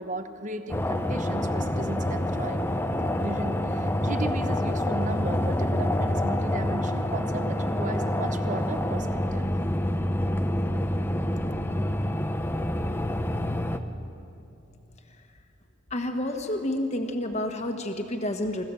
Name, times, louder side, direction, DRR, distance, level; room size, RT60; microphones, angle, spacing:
voice 1, 0.0-9.1 9.3-9.5, right 2 dB, 40° right, 9 dB, 0.9 m, -36 dB
sound 1, 0.7-13.8, left 1 dB, 10° left, 0.7 m, -27 dB
voice 2, 15.9-18.6, left 1 dB, 35° left, 4 dB, 1.4 m, -29 dB
25.0 x 15.0 x 7.0 m, 2.6 s
head